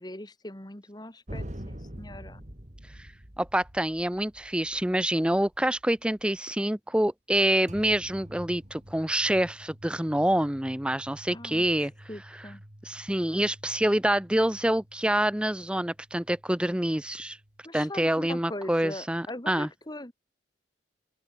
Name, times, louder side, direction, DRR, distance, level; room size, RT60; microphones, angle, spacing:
voice 1, 0.0-2.4 11.3-12.6 17.6-20.1, left 1 dB, 20° left, 2.3 m, -41 dB
sound 1, 1.3-6.4 7.7-17.7, equal, 40° right, 3.4 m, -47 dB
voice 2, 3.4-11.9 12.9-17.4 17.7-19.7, right 1 dB, 5° right, 0.6 m, -26 dB
open air
head